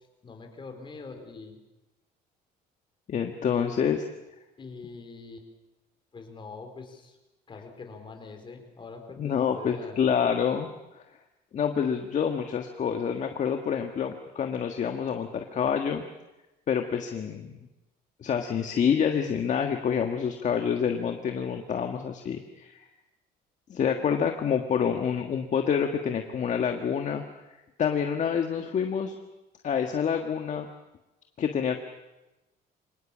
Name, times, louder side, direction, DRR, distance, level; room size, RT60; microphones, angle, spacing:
voice 1, 0.2-1.6 4.6-5.5 6.1-7.2 7.5-10.0, left 4 dB, 30° left, 4 dB, 4.6 m, -44 dB
voice 2, 3.1-4.0 9.2-10.7 10.9-11.0 11.5-16.1 16.7-17.6 18.2-22.8 23.7-27.2 27.8-29.1 29.6-30.7 31.4-31.8, left 7 dB, 45° left, 5 dB, 1.6 m, -27 dB
25.0 x 19.0 x 7.4 m, 1.0 s
cardioid pair, 110°, 17 cm